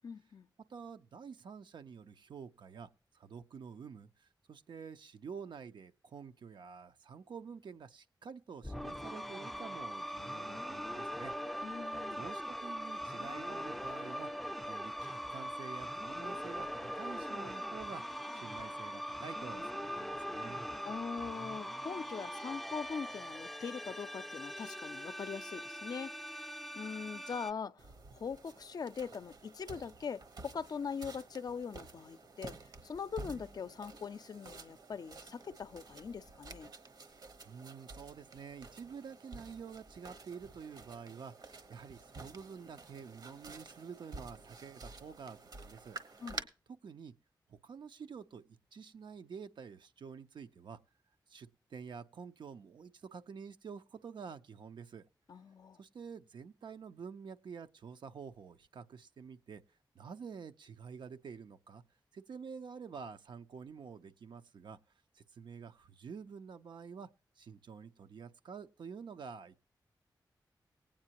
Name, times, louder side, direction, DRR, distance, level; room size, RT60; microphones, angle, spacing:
voice 1, 0.0-0.5 11.6-12.2 20.8-27.9 28.1-32.6 32.8-36.7 46.2-46.5 55.3-55.8, left 6 dB, 60° left, 0.4 m, -42 dB
voice 2, 0.7-2.9 3.1-11.3 12.2-18.0 18.3-20.6 37.4-46.0 46.7-47.1 47.5-50.8 51.3-55.0 55.8-59.6 59.9-61.8 62.1-64.8 65.1-67.1 67.4-69.6, right 6 dB, 80° right, 0.7 m, -49 dB
sound 1, 8.6-27.5, equal, ahead, 0.4 m, -41 dB
sound 2, 27.8-46.4, right 3 dB, 60° right, 1.1 m, -51 dB
18.5 x 8.7 x 2.9 m
wide cardioid pair, 95°, 8 cm